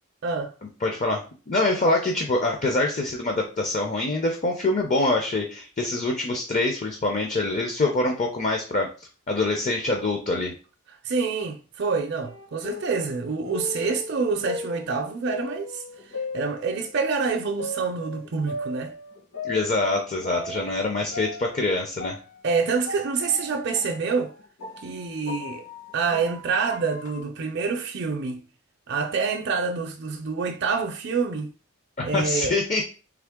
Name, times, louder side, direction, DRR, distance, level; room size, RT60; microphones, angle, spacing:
voice 1, 0.2-0.5 11.0-15.8 16.3-18.9 22.4-24.3 24.8-25.6 25.9-28.4 28.9-31.5 32.0-32.6, right 4 dB, 50° right, 0.5 m, -27 dB
voice 2, 0.8-8.9 9.3-10.5 19.4-22.2 32.0-32.8, left 2 dB, 35° left, 0.5 m, -25 dB
sound 1, 12.2-17.1 17.6-20.8 21.1-27.2, left 2 dB, 60° left, 1.9 m, -38 dB
3.6 x 3.2 x 3.6 m
head